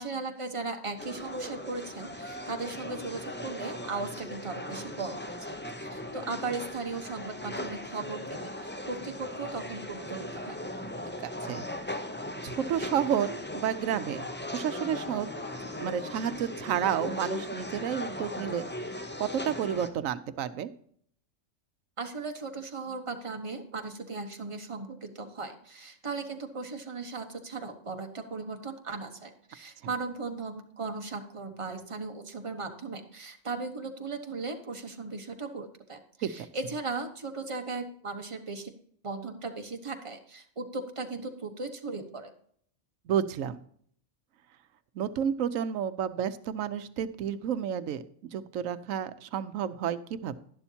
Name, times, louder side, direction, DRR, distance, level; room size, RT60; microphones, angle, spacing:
voice 1, 0.0-10.6 22.0-38.7 39.0-42.3, right 3 dB, 25° right, 5 dB, 1.1 m, -37 dB
sound 1, 1.0-19.9, left 1 dB, 10° left, 0.6 m, -38 dB
voice 2, 11.2-11.6 12.4-15.3 15.8-18.7 19.2-20.7 36.2-36.5 43.1-43.6 44.9-50.4, right 9 dB, 90° right, 13 dB, 1.1 m, -31 dB
Marimba xylophone, 14.7-17.4, left 7 dB, 65° left, 0.9 m, -51 dB
11.5 x 11.5 x 2.8 m, 0.62 s
omnidirectional pair, 1.3 m